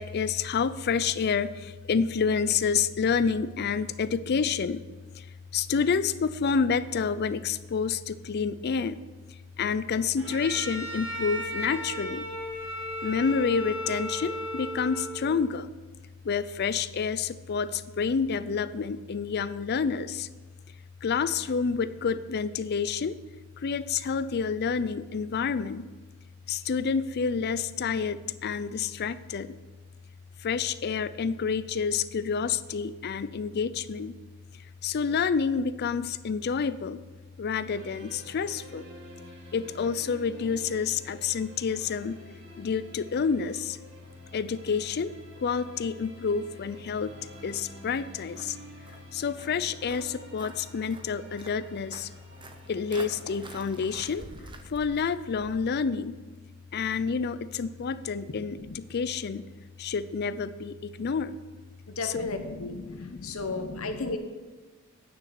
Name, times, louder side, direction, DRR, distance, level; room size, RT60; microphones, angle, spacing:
voice 1, 0.0-4.9 5.5-9.0 9.6-12.3 13.0-15.7 16.2-20.3 21.0-23.2 23.6-25.9 26.5-29.6 30.4-34.2 34.8-37.0 37.4-38.8 39.5-42.3 42.6-43.8 44.3-45.1 45.4-47.1 47.4-48.6 49.1-52.1 52.7-54.3 54.7-56.2 56.7-59.5 59.8-61.4 62.0-64.0, left 5 dB, 50° left, 15 dB, 0.4 m, -29 dB
Bowed string instrument, 10.2-15.4, equal, 5° right, 2.9 m, -35 dB
sound 1, 37.7-54.6, right 1 dB, 60° right, 2.2 m, -50 dB
Walk footsteps, 46.9-55.5, right 2 dB, 20° right, 0.7 m, -49 dB
voice 2, 61.9-64.2, left 3 dB, 80° left, 7 dB, 1.1 m, -34 dB
9.7 x 6.4 x 6.8 m, 1.3 s
head